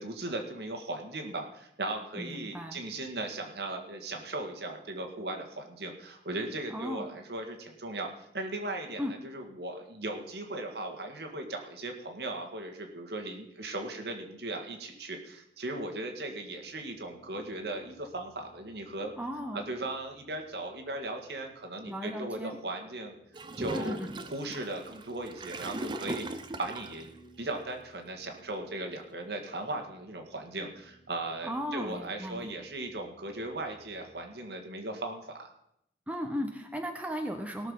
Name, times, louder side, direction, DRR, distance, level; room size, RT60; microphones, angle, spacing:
voice 1, 0.0-8.1 8.3-19.1 19.5-23.1 23.6-24.0 24.3-27.1 27.4-35.5, right 2 dB, 70° right, 3 dB, 1.9 m, -38 dB
voice 2, 2.1-2.8 6.7-7.0 9.0-9.2 19.2-19.6 21.9-22.6 23.7-24.2 31.4-32.5 36.1-37.7, equal, 10° right, 3 dB, 1.1 m, -36 dB
sound 1, 15.5-34.3, right 2 dB, 55° left, 2.1 m, -61 dB
Gurgling / Toilet flush, 23.3-27.1, right 1 dB, 25° right, 0.7 m, -39 dB
17.5 x 6.6 x 5.6 m, 0.76 s
head